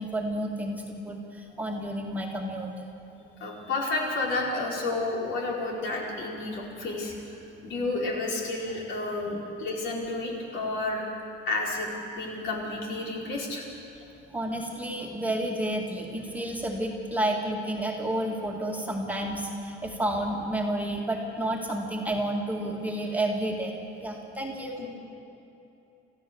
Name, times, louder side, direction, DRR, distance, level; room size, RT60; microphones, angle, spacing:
voice 1, 0.0-2.7 9.3-9.4 14.3-23.7 24.0-24.8, right 1 dB, 5° right, -1 dB, 2.0 m, -30 dB
voice 2, 3.4-7.4 7.6-11.0 11.5-11.9 12.1-13.6 13.9-14.0 24.8-24.9, left 2 dB, 65° left, -2 dB, 4.8 m, -31 dB
28.5 x 14.5 x 7.0 m, 2.9 s
cardioid pair, 150°, 21 cm